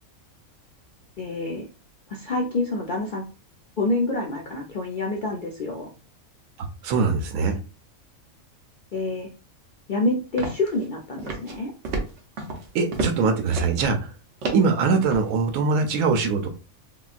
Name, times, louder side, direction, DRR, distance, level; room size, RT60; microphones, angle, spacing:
voice 1, 1.2-1.7 2.1-3.2 3.8-5.9 8.9-9.3 9.9-11.7, left 2 dB, 65° left, 0.5 m, -27 dB
voice 2, 6.8-7.6 12.7-14.1 14.5-16.5, right 4 dB, 90° right, 1.0 m, -22 dB
sound 1, 10.4-10.9 11.2-11.6 11.8-13.2 13.5-13.9 14.4-15.3, right 2 dB, 60° right, 1.0 m, -30 dB
3.7 x 2.2 x 2.4 m
omnidirectional pair, 1.4 m